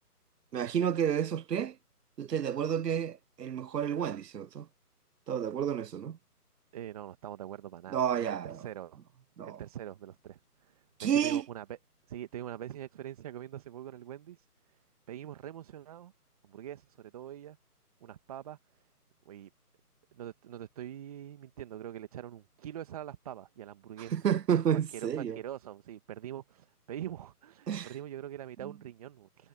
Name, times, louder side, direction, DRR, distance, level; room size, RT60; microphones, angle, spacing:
voice 1, 0.5-1.8 2.2-4.7 5.3-6.2 7.9-8.6 9.4-9.6 11.0-11.4 24.1-25.4 27.7-27.9 28.6-28.7, right 8 dB, 85° right, 0.7 m, -30 dB
voice 2, 6.7-9.0 9.4-10.8 11.1-11.8 12.1-14.8 15.1-16.1 16.4-17.6 18.0-18.6 19.2-19.5 20.1-24.1 24.9-29.5, right 11 dB, 25° right, 1.5 m, -43 dB
figure-of-eight pair, 155°, 47 cm